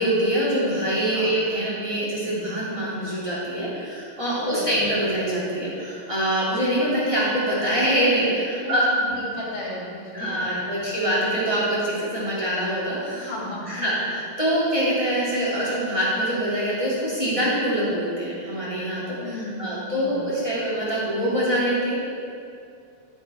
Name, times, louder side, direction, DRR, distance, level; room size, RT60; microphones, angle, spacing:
voice 1, 0.0-8.9 10.1-13.3 13.7-21.9, right 1 dB, 10° right, -8 dB, 2.0 m, -24 dB
voice 2, 8.6-10.8 13.1-14.0 19.2-20.2, left 1 dB, 65° left, -6 dB, 4.0 m, -35 dB
12.5 x 6.9 x 4.5 m, 2.5 s
omnidirectional pair, 4.7 m